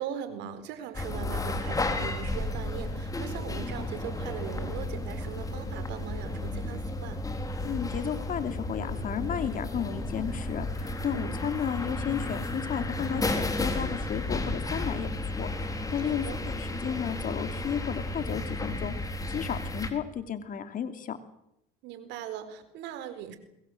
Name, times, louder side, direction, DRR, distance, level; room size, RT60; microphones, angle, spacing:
voice 1, 0.0-7.2 11.1-11.3 16.0-16.4 21.8-23.4, right 9 dB, 75° right, 11 dB, 4.2 m, -40 dB
sound 1, 0.9-19.9, left 2 dB, 20° left, 4.0 m, -33 dB
voice 2, 7.6-15.1 15.4-21.2, left 8 dB, 50° left, 9 dB, 2.9 m, -33 dB
23.0 x 21.5 x 7.8 m, 0.82 s
supercardioid pair, 90°, 18 cm